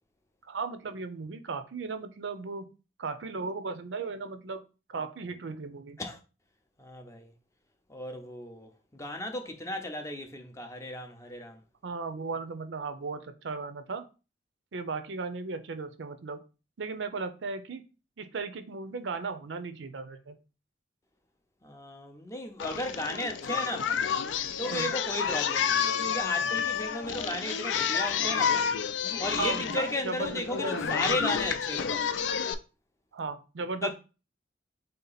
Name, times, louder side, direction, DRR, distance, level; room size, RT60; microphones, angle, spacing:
voice 1, 0.5-2.7 3.0-4.6 4.9-6.0 11.8-14.0 14.7-16.4 16.8-17.8 18.2-20.3 24.7-24.9 29.4-31.2 33.1-33.9, right 4 dB, 85° right, 0.5 m, -36 dB
voice 2, 6.8-7.3 7.9-11.6 21.6-24.1 24.6-28.7 29.2-32.1 33.8-33.9, left 1 dB, 15° left, 0.5 m, -35 dB
Singing, 22.6-32.5, left 7 dB, 85° left, 0.4 m, -30 dB
3.7 x 2.8 x 3.9 m
head